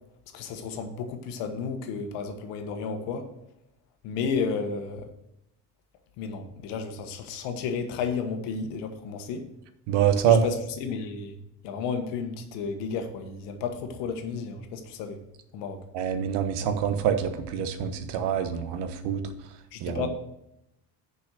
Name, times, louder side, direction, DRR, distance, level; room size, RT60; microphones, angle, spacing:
voice 1, 0.3-3.3 4.0-5.1 6.2-9.4 10.2-11.4 11.6-15.2 15.5-15.8 19.7-20.1, left 5 dB, 85° left, 6 dB, 1.4 m, -32 dB
voice 2, 9.9-10.4 15.9-19.2 19.8-20.0, right 9 dB, 75° right, 9 dB, 1.1 m, -25 dB
7.0 x 5.5 x 6.4 m, 0.83 s
cardioid pair, 135°, 41 cm